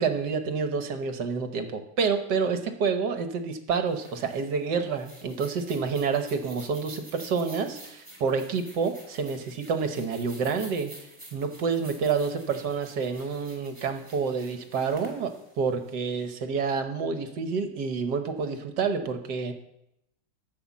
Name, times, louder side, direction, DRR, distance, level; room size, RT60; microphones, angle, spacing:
voice 1, 0.0-10.9 11.3-19.5, right 5 dB, 60° right, 7 dB, 1.5 m, -28 dB
sound 1, 3.9-16.3, right 1 dB, 15° right, 3.1 m, -49 dB
11.5 x 7.1 x 7.2 m, 0.84 s
omnidirectional pair, 2.2 m